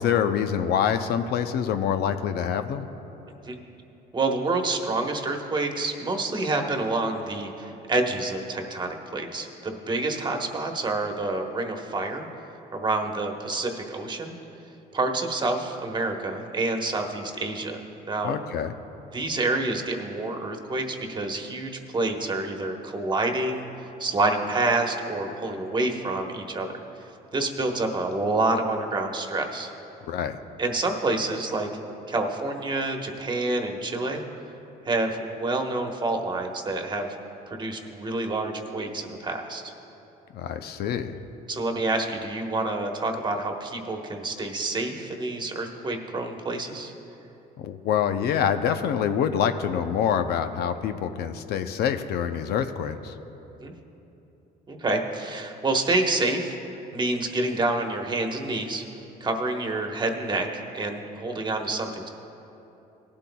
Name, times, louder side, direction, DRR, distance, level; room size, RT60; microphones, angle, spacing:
voice 1, 0.0-2.9 18.2-18.7 30.1-30.4 40.3-41.2 47.6-53.1, left 8 dB, 70° left, 8 dB, 0.6 m, -26 dB
voice 2, 4.1-12.3 12.7-14.4 14.9-17.8 18.1-18.3 19.1-23.6 24.0-26.7 27.3-29.7 30.6-31.7 32.1-34.2 34.8-37.1 37.5-39.7 41.5-46.9 53.6-53.7 54.7-56.6 56.9-58.8 59.2-62.1, right 2 dB, 25° right, 3 dB, 1.2 m, -28 dB
19.0 x 12.0 x 2.3 m, 3.0 s
cardioid pair, 110°, 17 cm